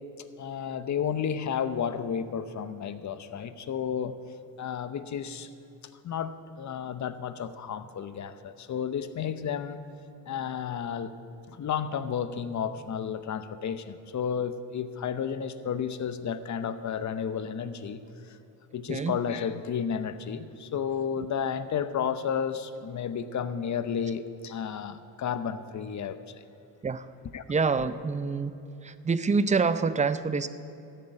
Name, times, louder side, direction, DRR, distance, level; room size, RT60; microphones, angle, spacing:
voice 1, 0.4-4.1 4.6-5.5 6.0-9.8 10.3-11.1 11.5-18.0 18.3-18.4 18.7-26.2 27.3-27.4, left 7 dB, 40° left, 12 dB, 0.8 m, -32 dB
voice 2, 18.9-19.2 26.8-27.1 27.5-28.5 28.8-30.5, right 4 dB, 15° right, 13 dB, 0.5 m, -26 dB
13.5 x 6.4 x 8.8 m, 2.7 s
supercardioid pair, 80°, 44 cm